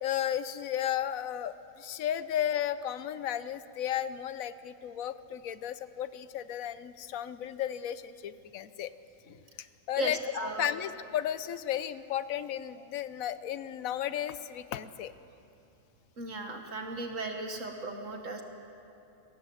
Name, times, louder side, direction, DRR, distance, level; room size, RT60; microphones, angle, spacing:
voice 1, 0.0-8.9 9.3-15.1, left 10 dB, 75° left, 14 dB, 1.1 m, -34 dB
voice 2, 10.0-10.7 16.2-18.4, right 3 dB, 60° right, 4 dB, 1.8 m, -36 dB
21.0 x 18.0 x 7.8 m, 2.7 s
omnidirectional pair, 1.5 m